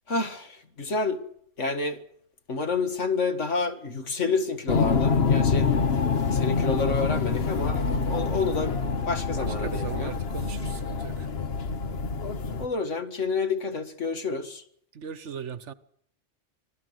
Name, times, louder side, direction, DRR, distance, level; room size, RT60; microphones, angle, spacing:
voice 1, 0.1-1.2 1.6-2.0 2.5-5.7 6.3-8.8 9.1-10.1 12.6-14.6, left 4 dB, 80° left, 2.1 m, -29 dB
sound 1, 4.7-12.7, left 5 dB, 55° left, 1.4 m, -26 dB
voice 2, 9.3-11.3 14.9-15.7, right 7 dB, 75° right, 1.4 m, -38 dB
26.0 x 16.5 x 8.1 m
omnidirectional pair, 1.2 m